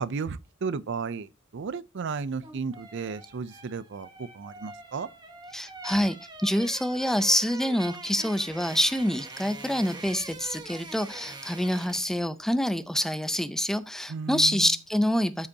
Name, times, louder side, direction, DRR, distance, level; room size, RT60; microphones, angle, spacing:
voice 1, 0.0-5.1 14.1-14.7, right 5 dB, 60° right, 0.5 m, -34 dB
sound 1, 2.2-12.2 12.5-12.7, right 2 dB, 20° right, 1.1 m, -44 dB
voice 2, 5.5-6.2 6.4-15.5, equal, ahead, 0.4 m, -26 dB
13.0 x 5.1 x 2.7 m
head